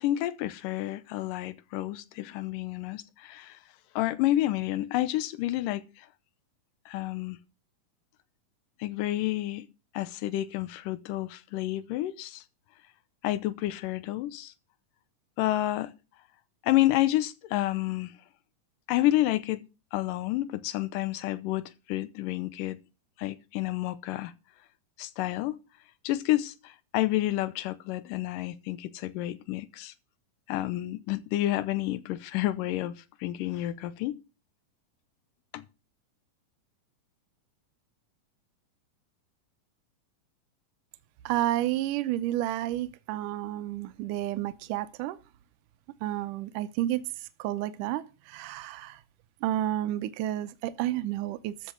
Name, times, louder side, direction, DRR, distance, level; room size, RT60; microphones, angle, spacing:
voice 1, 0.0-3.6 4.0-5.8 6.9-7.4 8.8-9.7 9.9-12.4 13.2-14.5 15.4-15.9 16.6-18.1 18.9-19.6 19.9-21.6 21.9-22.8 23.2-24.3 25.0-25.6 26.0-29.9 30.5-34.1 35.5-35.7, left 15 dB, 80° left, 2.4 m, -29 dB
voice 2, 41.3-45.2 46.0-49.0 49.4-51.7, right 14 dB, 80° right, 2.2 m, -31 dB
13.5 x 6.5 x 6.1 m
omnidirectional pair, 3.9 m